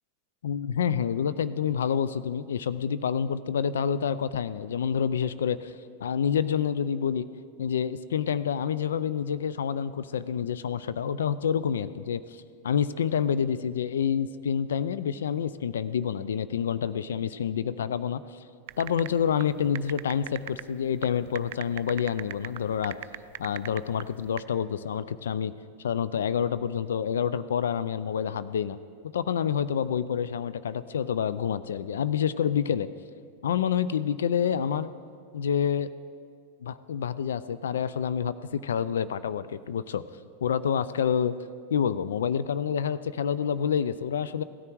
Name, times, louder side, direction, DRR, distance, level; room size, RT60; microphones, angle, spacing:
voice 1, 0.4-5.7 6.0-7.3 7.6-18.4 18.8-23.0 23.4-25.5 25.8-28.8 29.1-32.9 33.4-34.9 35.3-35.9 36.6-40.0 40.4-41.3 41.7-44.4, left 8 dB, 85° left, 15 dB, 0.4 m, -28 dB
sound 1, 18.7-24.4, right 16 dB, 60° right, 0.4 m, -39 dB
16.5 x 9.8 x 4.6 m, 2.2 s
hypercardioid pair, 110°, 0 cm